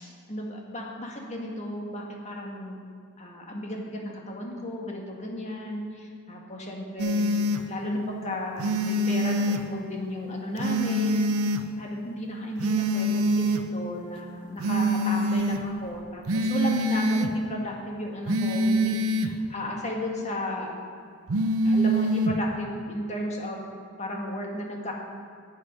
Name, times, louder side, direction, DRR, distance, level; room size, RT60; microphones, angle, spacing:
voice 1, 0.3-2.8 3.2-11.3 11.8-20.7 21.6-23.6 24.0-24.9, left 1 dB, 30° left, 0 dB, 1.6 m, -34 dB
sound 1, 7.0-7.6 8.6-9.6 10.6-11.6 12.6-13.6 14.6-15.6 16.3-17.3 18.3-19.3 21.3-22.4, equal, 85° right, 0.7 m, -25 dB
9.2 x 8.9 x 5.3 m, 2.4 s
head